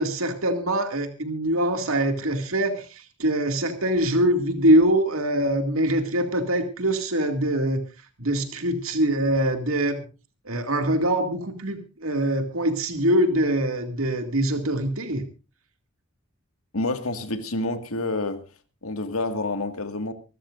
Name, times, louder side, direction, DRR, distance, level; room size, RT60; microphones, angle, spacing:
voice 1, 0.0-7.8 8.2-10.0 10.5-15.2, right 1 dB, 80° right, 2.3 m, -23 dB
voice 2, 16.7-18.4 18.8-20.1, left 2 dB, 90° left, 1.9 m, -28 dB
26.0 x 13.5 x 2.6 m
head